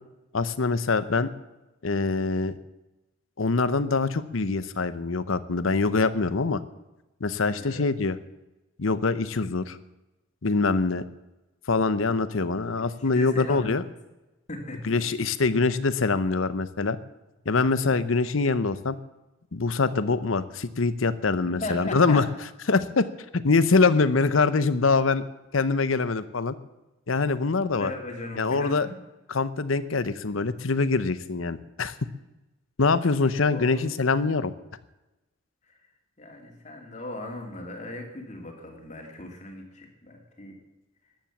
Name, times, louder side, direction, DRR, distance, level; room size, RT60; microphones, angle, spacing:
voice 1, 0.3-1.3 1.8-2.6 3.4-6.6 7.2-8.2 8.8-9.8 10.4-11.0 11.7-13.8 14.8-17.0 17.5-19.0 19.5-22.2 22.7-23.1 23.3-25.2 25.5-26.6 27.1-27.9 28.4-28.9 29.3-31.9 32.8-34.5, left 4 dB, 80° left, 14 dB, 0.9 m, -24 dB
voice 2, 12.8-13.8 14.5-15.0 17.8-18.0 21.6-22.2 27.8-28.9 32.8-33.0 33.5-33.8 35.6-35.8 36.2-40.6, left 2 dB, 35° left, 2 dB, 2.6 m, -38 dB
15.0 x 10.5 x 7.3 m, 1.0 s
head